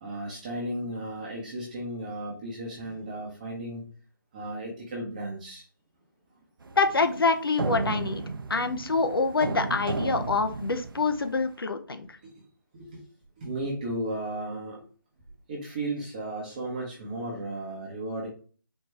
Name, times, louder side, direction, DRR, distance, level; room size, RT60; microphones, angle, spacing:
voice 1, 0.0-3.8 4.3-5.6 8.6-8.9 12.2-12.4 12.7-13.0 13.4-14.8 15.5-18.3, right 1 dB, 20° right, -3 dB, 0.9 m, -35 dB
sound 1, 6.6-11.5, right 4 dB, 75° right, 0.5 m, -34 dB
voice 2, 6.8-8.2 8.5-12.1, left 4 dB, 90° left, 7 dB, 0.8 m, -26 dB
4.4 x 2.5 x 3.2 m, 0.40 s
figure-of-eight pair, 165°, 12 cm